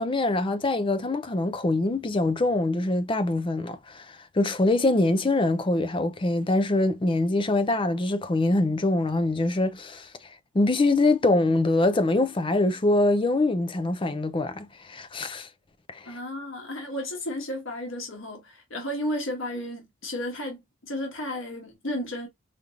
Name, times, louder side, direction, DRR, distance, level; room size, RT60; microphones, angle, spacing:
voice 1, 0.0-10.1 10.5-15.5 15.9-16.2, left 2 dB, 25° left, 0.5 m, -24 dB
voice 2, 16.0-22.3, left 1 dB, 80° left, 1.5 m, -33 dB
5.0 x 2.9 x 2.4 m
head